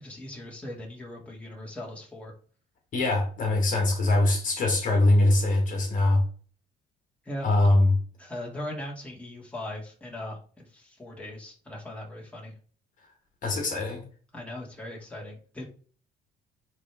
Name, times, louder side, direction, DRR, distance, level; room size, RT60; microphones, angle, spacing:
voice 1, 0.0-2.3 7.2-7.5 8.2-12.5 14.3-15.7, left 1 dB, 5° left, -3 dB, 2.4 m, -39 dB
voice 2, 2.9-6.2 7.4-8.0 13.4-14.0, left 2 dB, 50° left, 3 dB, 1.7 m, -22 dB
9.7 x 3.3 x 3.5 m, 0.42 s
cardioid pair, 110°, 17 cm